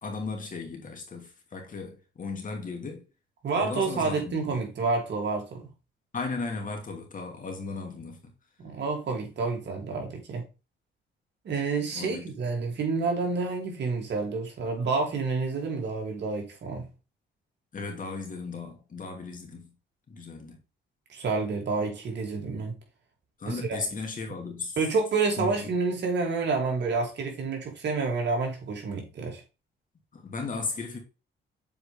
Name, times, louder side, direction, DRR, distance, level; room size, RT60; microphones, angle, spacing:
voice 1, 0.0-3.0 3.5-4.6 6.1-8.3 11.9-12.3 17.7-19.7 20.1-20.6 23.4-24.8 25.4-25.7 30.1-31.0, left 4 dB, 40° left, 2.7 m, -36 dB
voice 2, 3.4-5.7 8.6-10.4 11.4-16.9 21.1-22.8 23.5-23.8 24.8-29.4, right 4 dB, 60° right, 2.8 m, -29 dB
7.6 x 4.8 x 3.5 m
cardioid pair, 90°, 20 cm